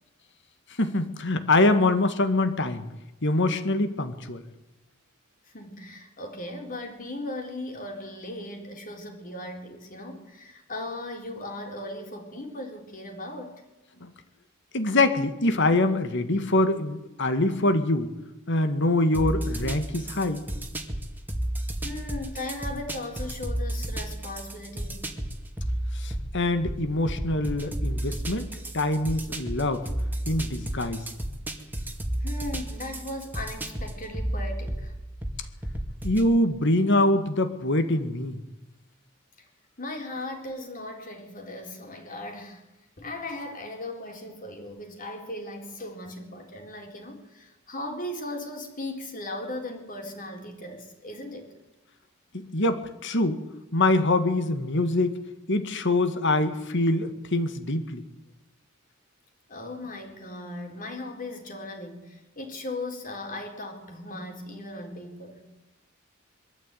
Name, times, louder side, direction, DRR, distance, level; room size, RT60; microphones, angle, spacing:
voice 1, 0.8-2.9 3.2-4.4 14.0-14.1 14.7-18.1 18.5-20.4 25.9-28.5 28.7-29.9 30.3-31.0 36.0-38.4 52.3-53.4 53.7-55.2 55.5-58.0, left 2 dB, 60° left, 1.9 m, -24 dB
voice 2, 5.5-13.6 21.8-25.1 32.2-34.9 39.4-39.5 39.8-42.6 43.0-51.5 59.5-65.5, left 1 dB, 40° left, 4.3 m, -37 dB
sound 1, 19.1-36.3, right 1 dB, 10° right, 2.2 m, -33 dB
23.0 x 13.5 x 9.3 m
head